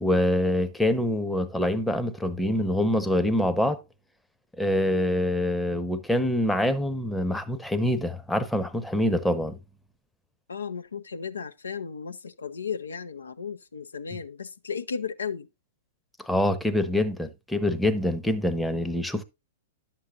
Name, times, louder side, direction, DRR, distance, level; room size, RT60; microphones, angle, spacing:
voice 1, 0.0-3.8 4.6-9.6 16.2-19.2, left 1 dB, 5° left, 0.8 m, -25 dB
voice 2, 10.5-15.5, left 6 dB, 75° left, 0.6 m, -35 dB
11.5 x 7.5 x 2.5 m
figure-of-eight pair, 105°, 0 cm